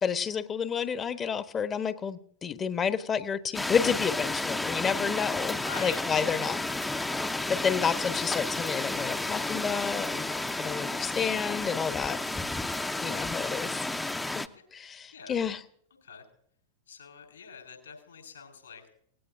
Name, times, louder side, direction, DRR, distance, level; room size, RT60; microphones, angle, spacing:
voice 1, 0.0-6.6 7.5-12.2 13.0-13.9 14.3-14.4 14.7-15.6, left 7 dB, 25° left, 12 dB, 1.1 m, -30 dB
sound 1, 3.5-14.5, left 2 dB, 10° left, 0.8 m, -32 dB
voice 2, 5.6-6.5 15.1-15.4 16.0-16.3 16.9-18.9, left 6 dB, 70° left, 5 dB, 4.8 m, -46 dB
25.5 x 18.5 x 2.6 m, 0.64 s
figure-of-eight pair, 90°, 0 cm